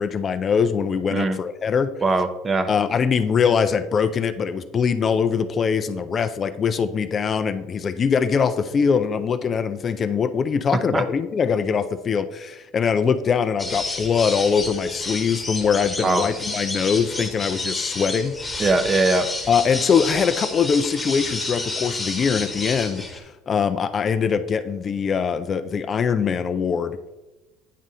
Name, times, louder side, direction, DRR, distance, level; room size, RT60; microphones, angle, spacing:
voice 1, 0.0-1.9 2.7-18.7 19.5-27.0, left 6 dB, 30° left, 10 dB, 0.4 m, -22 dB
voice 2, 2.0-2.7 10.7-11.0 16.0-16.3 18.6-19.3, right 3 dB, 20° right, 10 dB, 0.5 m, -21 dB
sound 1, 13.6-23.2, left 2 dB, 10° left, 1.3 m, -30 dB
9.2 x 4.0 x 3.7 m, 1.0 s
supercardioid pair, 125°, 0 cm